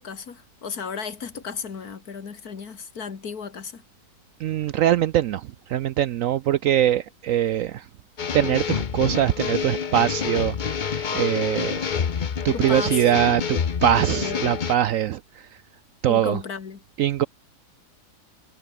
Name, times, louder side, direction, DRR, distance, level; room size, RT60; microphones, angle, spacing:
voice 1, 0.0-3.8 12.5-13.0 14.1-14.4 16.1-16.8, left 6 dB, 65° left, 2.3 m, -34 dB
voice 2, 4.4-7.8 8.3-11.8 12.4-15.2 16.0-16.4 17.0-17.3, right 11 dB, 70° right, 0.8 m, -22 dB
sound 1, 8.2-14.7, left 6 dB, 40° left, 0.7 m, -27 dB
omnidirectional pair, 1.8 m